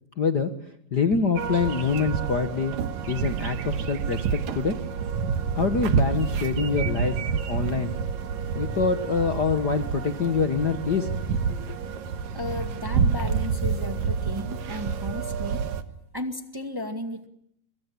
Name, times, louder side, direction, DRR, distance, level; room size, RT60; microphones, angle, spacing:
voice 1, 0.2-0.5 0.9-2.7 3.1-4.8 5.5-7.1 7.5-7.9 8.5-11.1 11.6-11.7, left 5 dB, 60° left, 7 dB, 1.0 m, -25 dB
sound 1, 1.4-15.8, right 6 dB, 60° right, 2.5 m, -28 dB
voice 2, 12.3-15.6 16.1-17.3, left 1 dB, 15° right, 6 dB, 0.9 m, -34 dB
25.0 x 23.0 x 10.0 m, 0.74 s
omnidirectional pair, 4.0 m